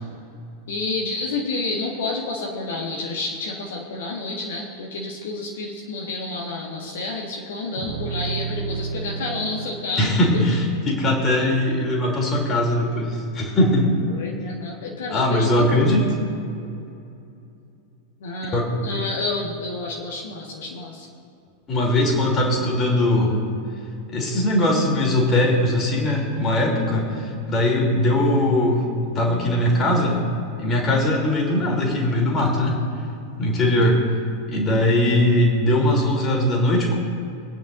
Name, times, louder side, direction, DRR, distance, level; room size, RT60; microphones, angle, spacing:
voice 1, 0.7-10.1 14.0-16.0 18.2-21.1 27.1-27.3 33.7-33.8, left 3 dB, 60° left, -1 dB, 1.5 m, -29 dB
sound 1, 7.8-12.2, right 5 dB, 60° right, 2.4 m, -33 dB
voice 2, 10.0-14.0 15.1-16.0 18.5-18.6 18.9-19.0 21.7-23.4 24.1-30.2 30.6-32.8 33.4-34.0 34.5-37.0, left 1 dB, 25° left, 0 dB, 2.9 m, -20 dB
24.0 x 9.1 x 2.6 m, 2.6 s
figure-of-eight pair, 90°, 0 cm